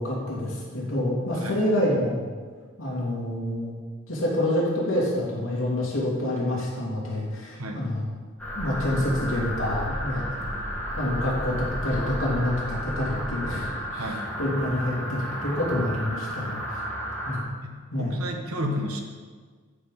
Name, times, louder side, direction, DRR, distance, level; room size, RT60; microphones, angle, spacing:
voice 1, 0.0-2.3 2.8-3.7 4.1-8.0 8.5-10.3 11.0-14.1 14.4-16.6 17.2-17.4 17.9-18.2, left 1 dB, 65° left, -5 dB, 2.9 m, -27 dB
sound 1, 8.4-17.4, equal, 5° left, 1.6 m, -32 dB
voice 2, 13.9-14.2 17.6-19.0, equal, 85° right, 3 dB, 1.2 m, -32 dB
9.9 x 5.0 x 5.5 m, 1.5 s
head